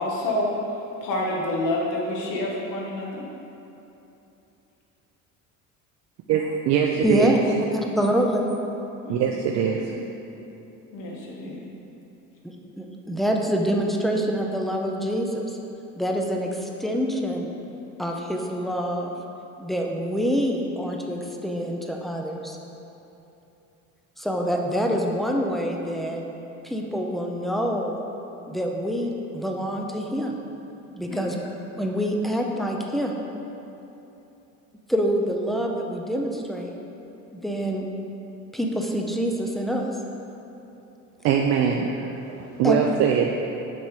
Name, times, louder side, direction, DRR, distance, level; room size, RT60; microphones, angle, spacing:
voice 1, 0.0-3.2 7.1-7.2 9.0-10.1 10.9-11.7 31.1-31.3, left 1 dB, 75° left, -2 dB, 1.5 m, -29 dB
voice 2, 6.3-7.4 9.1-9.9 41.2-43.3, right 8 dB, 55° right, 1 dB, 0.5 m, -22 dB
voice 3, 7.0-7.4 7.7-8.4 12.4-15.6 16.0-17.5 18.0-19.1 19.6-22.6 24.2-26.2 26.6-28.0 28.5-30.4 30.9-31.4 31.8-33.2 34.9-36.7 37.3-37.9 38.5-39.9 42.6-42.8, equal, ahead, 1 dB, 0.5 m, -26 dB
7.4 x 5.3 x 4.7 m, 3.0 s
cardioid pair, 160°, 31 cm